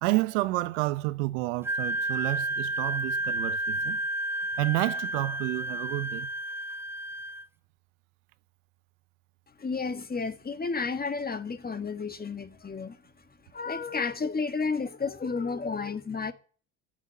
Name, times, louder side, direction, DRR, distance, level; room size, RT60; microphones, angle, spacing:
voice 1, 0.0-4.0 4.6-6.3, right 19 dB, 90° right, 0.9 m, -30 dB
Wind instrument woodwind instrument, 1.6-7.5, right 2 dB, 5° right, 0.6 m, -31 dB
voice 2, 9.6-13.0 13.5-16.3, left 4 dB, 25° left, 1.6 m, -32 dB
12.0 x 6.5 x 8.5 m
supercardioid pair, 80°, 37 cm